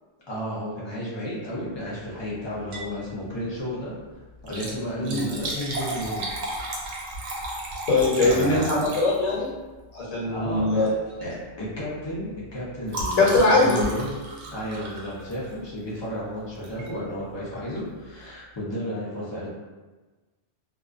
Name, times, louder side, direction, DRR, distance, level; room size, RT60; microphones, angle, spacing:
voice 1, 0.3-3.9 4.5-6.3 8.2-8.9 10.3-11.0 11.2-14.1 14.5-19.5, equal, 35° left, -7 dB, 0.4 m, -32 dB
Liquid, 2.5-3.0 3.3-3.4 4.3-9.5 10.5-10.7 11.1-11.3 11.6-15.7 16.6-16.9 17.4-17.5 17.7-17.8, right 1 dB, 70° right, 0.8 m, -34 dB
voice 2, 7.9-9.5 9.9-10.9 13.2-13.8, left 2 dB, 90° left, -5 dB, 1.1 m, -21 dB
2.2 x 2.2 x 2.5 m, 1.2 s
omnidirectional pair, 1.3 m